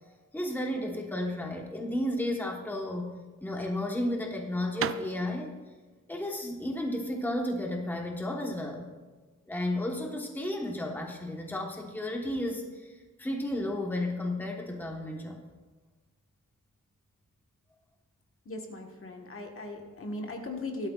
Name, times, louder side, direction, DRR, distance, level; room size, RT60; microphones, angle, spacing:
voice 1, 0.1-3.1 3.4-5.5 6.1-8.9 9.5-15.4, left 1 dB, 5° left, 1 dB, 1.2 m, -33 dB
sound 1, 3.0-8.5, right 8 dB, 45° right, 0.4 m, -40 dB
voice 2, 18.4-20.9, left 2 dB, 45° left, 2 dB, 1.5 m, -38 dB
16.5 x 12.0 x 2.4 m, 1.3 s
wide cardioid pair, 140°, 31 cm